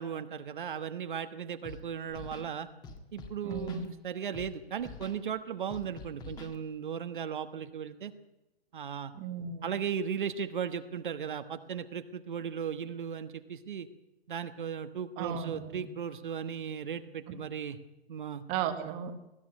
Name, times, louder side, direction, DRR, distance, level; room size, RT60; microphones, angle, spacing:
voice 1, 0.0-2.7 3.1-8.1 8.7-9.1 9.6-13.9 14.3-17.8 18.1-18.4, right 7 dB, 50° right, 10 dB, 1.3 m, -36 dB
Scratching (performance technique), 1.6-1.8 2.1-2.5 2.8-3.9 4.3-4.5 4.8-5.2 5.7-6.6, left 4 dB, 15° left, 1.7 m, -46 dB
voice 2, 3.4-3.9 9.1-9.7 15.2-15.9 18.5-19.1, right 8 dB, 20° right, 9 dB, 1.3 m, -35 dB
20.0 x 13.0 x 10.0 m, 0.95 s
figure-of-eight pair, 130°, 31 cm